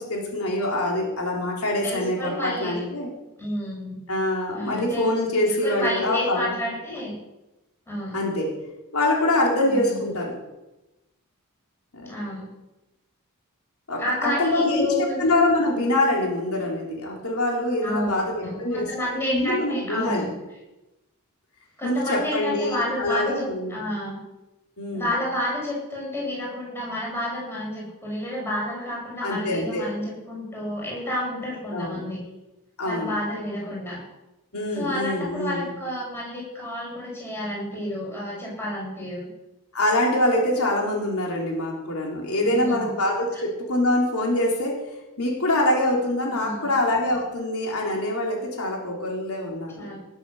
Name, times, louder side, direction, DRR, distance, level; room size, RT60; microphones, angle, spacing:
voice 1, 0.0-3.1 4.1-6.6 8.1-8.5 8.9-10.4 11.9-12.1 13.9-18.9 19.1-20.3 21.8-23.8 24.8-25.1 29.2-29.9 31.7-32.0 32.8-33.1 34.5-35.7 39.7-44.8 45.2-49.9, left 1 dB, 80° left, -1 dB, 3.9 m, -24 dB
voice 2, 1.8-2.8 3.4-4.0 4.5-5.1 5.5-7.1 7.9-8.2 9.7-10.1 12.1-12.4 14.0-15.2 16.2-16.3 17.8-20.3 21.8-24.2 24.9-32.2 32.8-34.0 34.7-39.3 42.4-42.9 46.3-46.7 49.8-50.0, left 1 dB, 10° left, -4 dB, 7.2 m, -30 dB
18.5 x 8.3 x 7.2 m, 0.99 s
head